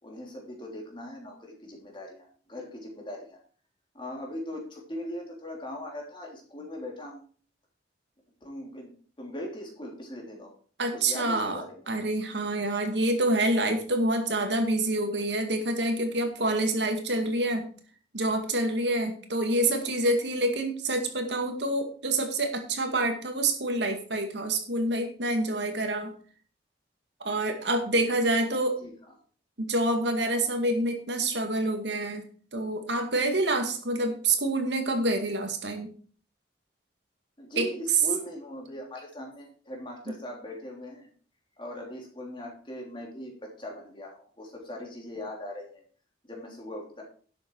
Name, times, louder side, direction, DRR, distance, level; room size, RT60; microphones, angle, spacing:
voice 1, 0.0-3.4 3.9-7.2 8.4-8.9 9.2-10.5 10.9-11.8 19.6-19.9 28.8-28.9 37.4-41.1 41.6-45.8 46.2-47.0, left 1 dB, 25° left, 0 dB, 3.2 m, -40 dB
voice 2, 10.8-17.7 18.1-26.1 27.2-28.7 29.6-35.9 37.6-37.7, right 1 dB, 75° right, 5 dB, 2.2 m, -27 dB
11.5 x 7.7 x 4.7 m, 0.43 s
head